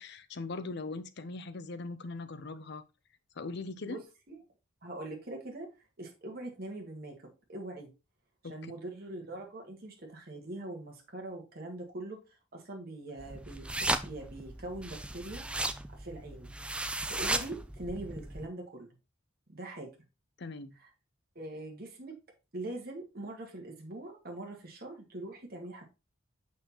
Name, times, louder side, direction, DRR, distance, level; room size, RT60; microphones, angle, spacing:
voice 1, 0.0-2.8 3.4-4.0 8.4-8.7 20.4-20.8, left 3 dB, 55° left, 0.6 m, -40 dB
voice 2, 3.8-4.4 4.8-5.7 6.0-7.1 7.5-7.9 8.4-12.2 12.5-15.4 15.9-16.5 17.1-18.9 19.5-19.9 20.8-20.9 21.3-22.1 22.5-25.8, right 1 dB, 50° right, 1.7 m, -42 dB
sound 1, 13.2-18.5, right 2 dB, 5° right, 0.3 m, -36 dB
6.4 x 5.6 x 2.9 m
head